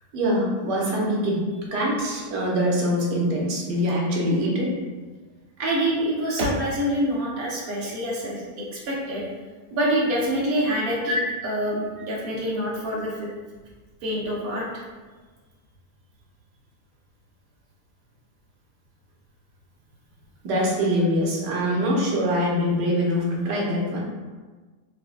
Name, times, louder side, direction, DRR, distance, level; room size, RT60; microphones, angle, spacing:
voice 1, 0.1-1.4 1.7-4.7 11.1-11.2 20.4-24.0, equal, 80° right, -3 dB, 1.4 m, -23 dB
voice 2, 5.6-9.2 9.7-11.2 11.4-13.3 14.0-14.8, equal, 65° right, -4 dB, 1.0 m, -26 dB
4.7 x 2.0 x 2.4 m, 1.3 s
omnidirectional pair, 1.8 m